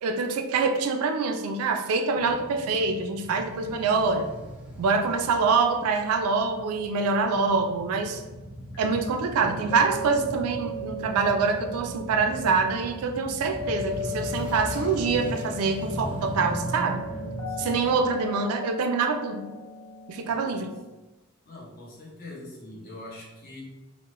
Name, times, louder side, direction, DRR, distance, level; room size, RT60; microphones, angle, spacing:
voice 1, 0.0-4.3 4.8-8.2 8.8-17.0 17.6-19.5 20.1-20.7, right 4 dB, 85° right, 5 dB, 0.3 m, -25 dB
Male speech man speaking / Motorcycle / Idling, 2.1-18.1, equal, 5° right, 0.4 m, -38 dB
sound 1, 8.7-20.8, left 2 dB, 85° left, 0.5 m, -38 dB
voice 2, 17.5-18.0 20.2-20.7 21.4-23.6, left 2 dB, 45° left, -4 dB, 0.7 m, -44 dB
2.3 x 2.0 x 2.9 m, 1.1 s
head